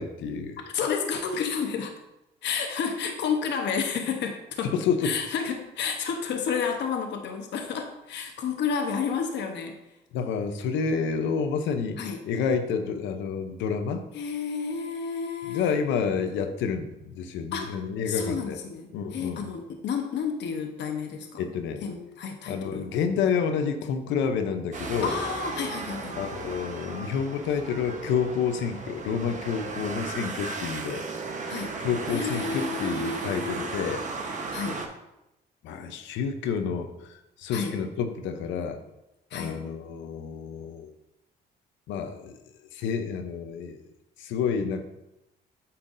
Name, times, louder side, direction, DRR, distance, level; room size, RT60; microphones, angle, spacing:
voice 1, 0.0-0.6 4.6-5.2 10.1-12.0 12.3-14.0 15.4-18.6 18.9-19.5 21.4-21.8 22.5-25.1 26.1-31.0 31.8-34.4 35.6-38.8 39.3-40.9 41.9-42.4 42.7-43.8 44.2-44.9, left 6 dB, 90° left, 7 dB, 0.7 m, -29 dB
voice 2, 0.7-1.9 2.4-4.7 5.0-9.8 12.0-12.2 14.1-15.7 17.5-17.7 18.1-21.4 21.8-22.9 25.0-26.2 31.5-31.8 32.1-33.9 34.5-34.8 37.5-37.8 39.3-39.6, left 6 dB, 70° left, 4 dB, 1.0 m, -31 dB
sound 1, 24.7-34.9, right 3 dB, 40° right, 1.1 m, -35 dB
8.5 x 5.8 x 2.6 m, 0.91 s
cardioid pair, 85°, 19 cm